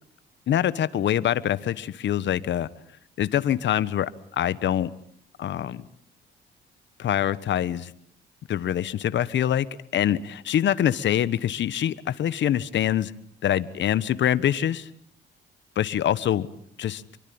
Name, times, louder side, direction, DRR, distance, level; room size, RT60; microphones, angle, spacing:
voice 1, 0.5-2.7 3.2-4.9 5.4-5.8 7.0-7.9 8.5-9.7 9.9-13.1 13.4-14.9 15.7-16.5 16.8-17.0, left 10 dB, 65° left, 16 dB, 1.3 m, -24 dB
26.0 x 23.5 x 8.7 m, 0.62 s
cardioid pair, 90°, 20 cm